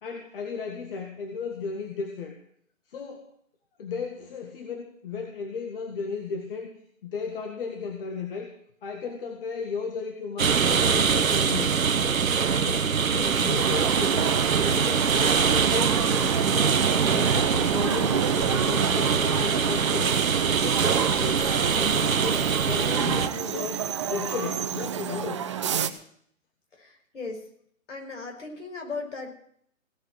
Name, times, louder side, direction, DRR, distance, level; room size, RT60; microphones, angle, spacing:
voice 1, 0.0-2.4 2.9-3.3 3.8-6.7 7.0-8.5 8.8-11.8 12.5-20.1 20.6-25.5, left 5 dB, 40° left, 4 dB, 2.0 m, -35 dB
sound 1, 10.4-23.3, right 6 dB, 85° right, 1.2 m, -23 dB
sound 2, 13.6-25.9, right 8 dB, 25° right, 0.6 m, -30 dB
voice 2, 26.7-27.4 27.9-29.3, left 4 dB, 60° left, 2 dB, 5.8 m, -37 dB
17.5 x 7.6 x 7.7 m, 0.65 s
hypercardioid pair, 150°, 40 cm